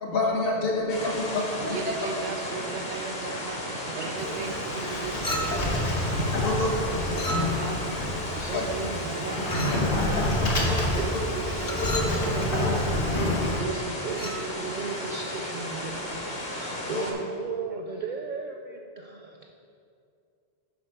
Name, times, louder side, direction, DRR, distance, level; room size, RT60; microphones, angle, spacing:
voice 1, 0.0-1.9 6.4-6.7 8.5-8.7 10.7-10.8 11.9-12.0 12.6-12.7 16.9-17.0, left 2 dB, 60° left, -1 dB, 1.3 m, -27 dB
voice 2, 0.8-1.9 2.6-4.4 5.0-6.4 8.3-19.5, right 4 dB, 55° right, 2 dB, 0.6 m, -38 dB
sound 1, 0.9-17.1, left 1 dB, 45° left, 1.3 m, -34 dB
voice 3, 1.7-5.1 5.5-5.6 6.8-8.0 8.5-10.3 10.9-11.1 11.6-11.8 12.1-12.8 13.6-13.7 14.1-14.2, right 6 dB, 90° right, 8 dB, 0.9 m, -37 dB
Sliding door, 4.2-13.6, left 1 dB, 80° left, 1.3 m, -28 dB
Chink clink, 5.2-5.8 7.1-7.8 9.5-9.9 11.6-12.2 14.1-14.4, equal, 25° left, 0.5 m, -33 dB
7.6 x 5.2 x 4.6 m, 2.5 s
omnidirectional pair, 1.1 m